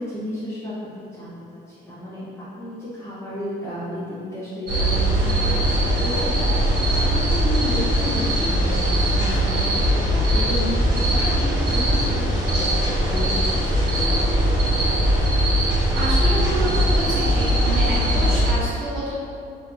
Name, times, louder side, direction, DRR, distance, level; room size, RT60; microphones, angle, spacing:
voice 1, 0.0-13.6, left 1 dB, 15° left, -12 dB, 0.6 m, -32 dB
sound 1, 4.7-18.5, equal, 60° right, 1.1 m, -20 dB
voice 2, 15.9-19.1, right 1 dB, 85° right, -9 dB, 1.0 m, -28 dB
3.0 x 2.4 x 2.4 m, 2.4 s
cardioid pair, 90°, 20 cm